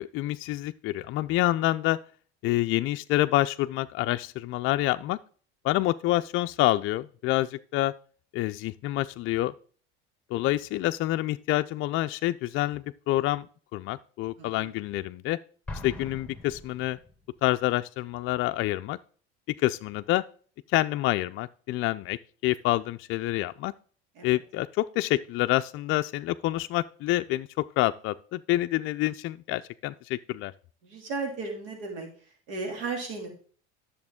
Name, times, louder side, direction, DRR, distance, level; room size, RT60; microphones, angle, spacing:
voice 1, 0.0-2.0 2.4-5.2 5.6-7.9 8.3-9.5 10.3-13.5 13.7-15.4 15.8-17.0 17.4-19.0 19.6-20.2 20.7-22.2 22.4-23.7 24.2-27.5 27.8-30.5, left 16 dB, 45° left, 8 dB, 0.4 m, -27 dB
voice 2, 14.4-14.7 24.1-24.4 30.8-32.1 32.5-33.3, right 3 dB, 80° right, 1 dB, 3.2 m, -35 dB
Explosion, 15.7-17.4, left 2 dB, 5° left, 1.5 m, -41 dB
10.5 x 7.0 x 3.6 m, 0.44 s
supercardioid pair, 105°, 29 cm